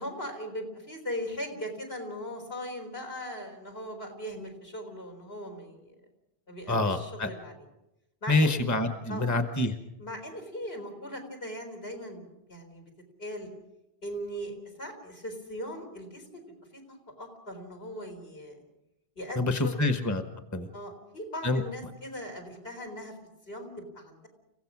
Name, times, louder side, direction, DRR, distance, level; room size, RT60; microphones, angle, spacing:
voice 1, 0.0-5.9 6.5-7.6 8.2-8.6 9.1-9.2 10.0-12.8 13.2-13.5 14.0-16.4 16.7-18.6 19.2-19.9 20.7-23.2 23.5-24.3, equal, 75° left, 1 dB, 4.4 m, -39 dB
voice 2, 6.7-7.3 8.3-9.8 19.4-20.2 20.5-20.7 21.4-21.6, left 2 dB, 15° left, 7 dB, 1.2 m, -26 dB
30.0 x 16.0 x 6.1 m, 0.89 s
omnidirectional pair, 1.0 m